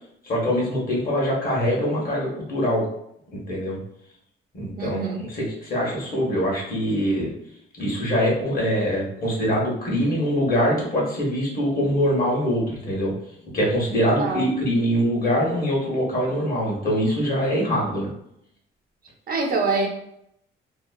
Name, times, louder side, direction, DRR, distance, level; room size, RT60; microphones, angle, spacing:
voice 1, 0.2-2.8 3.3-3.8 4.5-7.3 7.8-13.1 13.5-18.1, equal, 45° left, -4 dB, 1.2 m, -23 dB
voice 2, 4.8-5.2 14.0-14.4 19.3-19.9, right 3 dB, 50° right, 3 dB, 0.5 m, -25 dB
2.8 x 2.1 x 2.4 m, 0.74 s
cardioid pair, 90°, 20 cm